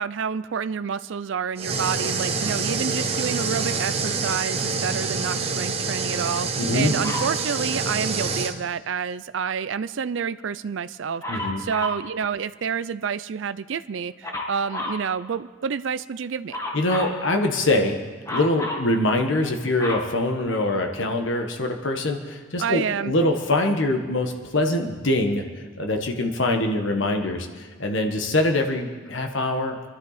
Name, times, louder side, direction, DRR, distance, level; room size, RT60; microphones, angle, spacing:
voice 1, 0.0-16.6 22.6-23.1, right 6 dB, 70° right, 13 dB, 0.4 m, -29 dB
sound 1, 1.6-8.5, right 4 dB, 30° right, 1.0 m, -26 dB
voice 2, 6.6-6.9 11.3-11.6 16.7-18.0 18.3-25.5 25.8-27.5 27.8-29.9, left 1 dB, 70° left, 4 dB, 1.4 m, -23 dB
Dog, 7.0-7.4 11.2-12.1 14.2-15.1 16.5-17.2 18.2-18.9 19.4-20.9 21.7-21.8, left 1 dB, 15° left, 1.6 m, -31 dB
25.0 x 11.5 x 4.2 m, 1.4 s
head